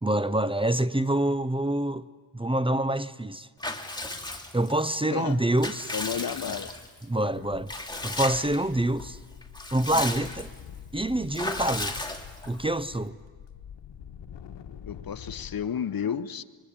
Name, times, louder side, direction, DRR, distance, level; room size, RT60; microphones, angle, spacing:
voice 1, 0.0-2.1 2.3-3.5 4.5-5.9 7.1-7.7 8.0-9.2 9.7-10.5 10.9-12.1 12.4-13.2, right 1 dB, 15° right, 0.7 m, -26 dB
Water / Bathtub (filling or washing) / Liquid, 3.6-4.8 5.3-7.0 7.7-8.6 9.0-9.1 9.4-10.6 11.3-12.6, left 2 dB, 10° left, 2.7 m, -35 dB
voice 2, 5.1-5.4 5.9-6.7 7.2-7.6 14.9-16.4, left 8 dB, 55° left, 1.0 m, -32 dB
sound 1, 6.9-7.0 7.2-15.6, left 8 dB, 85° left, 1.4 m, -45 dB
25.5 x 23.0 x 8.8 m
cardioid pair, 70°, 42 cm